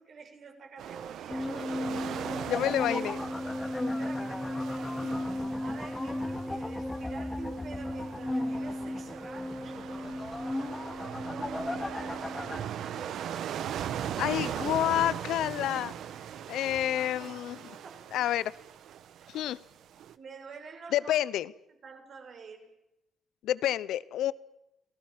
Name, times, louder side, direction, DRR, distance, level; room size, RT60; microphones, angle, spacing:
voice 1, 0.0-3.0 3.8-5.3 5.6-9.9 10.8-13.7 16.9-17.4 17.8-18.1 19.2-19.4 20.2-21.2 21.7-22.7, right 5 dB, 55° right, 7.1 m, -48 dB
sound 1, 0.8-20.1, right 10 dB, 75° right, 1.2 m, -40 dB
sound 2, 1.3-12.6, left 1 dB, 10° left, 3.0 m, -34 dB
voice 2, 2.5-3.2 14.2-15.9 16.5-17.6 18.1-18.5 19.3-19.6 20.9-21.5 23.4-24.3, left 12 dB, 80° left, 0.9 m, -29 dB
30.0 x 18.5 x 7.5 m
cardioid pair, 90°, 0 cm